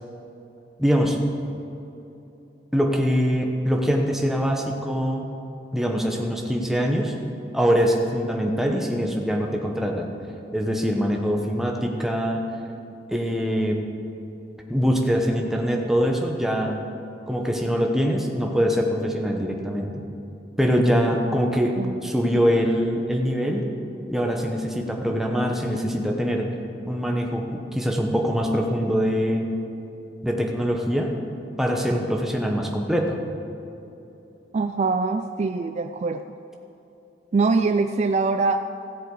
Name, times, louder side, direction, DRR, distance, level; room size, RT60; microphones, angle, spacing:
voice 1, 0.8-1.2 2.7-5.2 5.7-7.1 7.5-10.1 10.5-12.5 13.1-13.8 14.7-16.7 17.3-19.9 20.6-21.7 22.0-23.6 24.1-26.5 26.8-29.5 30.2-31.1 31.6-33.2, equal, ahead, 1 dB, 1.0 m, -23 dB
voice 2, 34.5-36.2 37.3-38.6, right 4 dB, 40° right, 8 dB, 0.3 m, -23 dB
16.0 x 7.7 x 4.8 m, 2.9 s
head